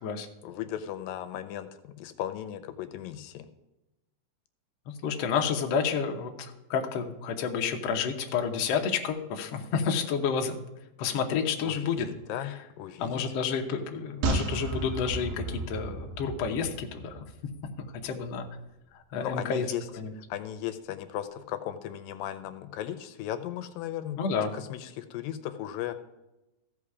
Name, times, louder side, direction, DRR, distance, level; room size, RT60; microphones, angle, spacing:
voice 1, 0.4-3.5 11.3-11.4 11.6-13.2 19.2-19.8 20.3-24.2 24.5-26.0, left 11 dB, 85° left, 9 dB, 2.4 m, -36 dB
voice 2, 5.0-10.6 11.0-12.1 12.4-12.6 13.0-17.2 18.0-18.5 18.9-19.7 19.9-20.1 24.2-24.5, left 6 dB, 70° left, 3 dB, 1.6 m, -30 dB
sound 1, 14.2-17.7 18.0-18.1, right 3 dB, 75° right, 2.5 m, -33 dB
15.0 x 5.5 x 4.8 m, 0.98 s
omnidirectional pair, 4.0 m